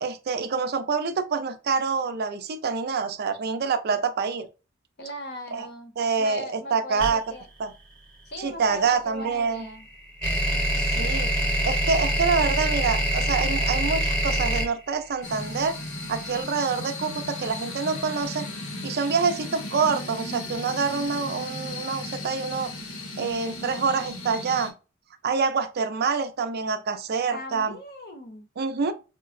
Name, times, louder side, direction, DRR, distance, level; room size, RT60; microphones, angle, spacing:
voice 1, 0.0-4.5 5.5-5.7 6.0-7.2 7.6-7.7 8.4-9.7 10.8-11.3 11.6-15.8 16.1-18.5 18.8-22.7 23.2-24.7 25.2-27.8 28.6-28.9, right 5 dB, 50° right, 0.4 m, -26 dB
voice 2, 5.0-7.5 8.2-9.9 27.3-28.5, left 1 dB, 50° left, 0.8 m, -39 dB
sound 1, 7.0-7.1 9.2-16.2, equal, 5° left, 0.9 m, -24 dB
sound 2, 15.2-24.7, left 2 dB, 85° left, 1.0 m, -36 dB
4.3 x 2.1 x 2.4 m
head